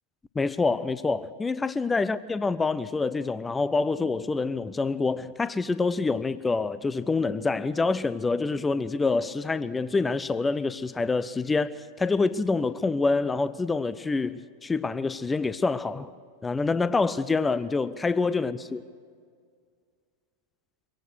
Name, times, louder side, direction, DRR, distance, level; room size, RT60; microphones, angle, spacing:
voice 1, 0.4-11.7 12.0-16.1 16.4-18.8, left 3 dB, 10° left, 0.5 m, -26 dB
23.5 x 18.0 x 6.3 m
figure-of-eight pair, 90°, 0 cm